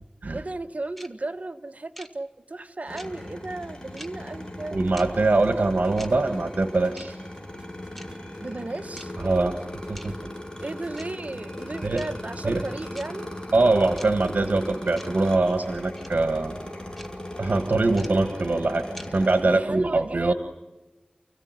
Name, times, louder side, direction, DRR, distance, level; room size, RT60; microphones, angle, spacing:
voice 1, 0.3-4.8 8.4-9.1 10.6-13.4 19.4-20.3, right 2 dB, 55° right, 8 dB, 1.2 m, -35 dB
sound 1, 1.0-1.1 2.0-2.1 3.0-3.1 4.0-4.1 5.0-5.1 6.0-6.1 7.0-7.1 8.0-8.1 9.0-9.1 10.0-10.1 11.0-11.1 12.0-12.1 13.0-13.1 14.0-14.1 15.0-15.1 16.0-16.1 17.0-17.1 18.0-18.1 19.0-19.1, equal, 5° left, 2.0 m, -42 dB
sound 2, 2.9-19.4, left 1 dB, 25° left, 7.4 m, -38 dB
voice 2, 4.7-7.2 9.2-9.6 9.9-10.3 11.8-12.0 12.4-12.6 13.5-16.5 17.4-20.3, right 2 dB, 75° right, 7 dB, 1.5 m, -23 dB
sound 3, 5.6-13.1 13.6-13.7, equal, 20° right, 5.9 m, -53 dB
29.5 x 16.0 x 9.5 m, 1.1 s
wide cardioid pair, 50°, 3 cm